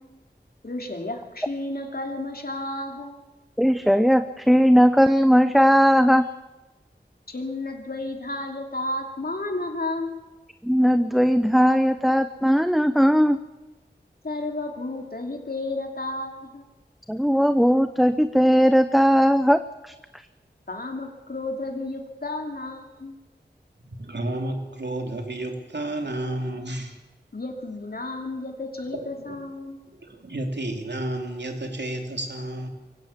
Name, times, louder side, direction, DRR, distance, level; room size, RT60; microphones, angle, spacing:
voice 1, 0.6-3.2 7.3-10.2 14.2-16.7 20.7-23.2 27.3-29.9, left 2 dB, 55° left, 2 dB, 2.9 m, -32 dB
voice 2, 3.6-6.3 10.6-13.4 17.1-19.9, equal, ahead, 10 dB, 0.7 m, -18 dB
voice 3, 23.8-27.0 28.9-29.4 29.9-32.7, right 1 dB, 75° right, 3 dB, 3.0 m, -31 dB
23.5 x 16.5 x 7.3 m, 1.1 s
wide cardioid pair, 55°, 18 cm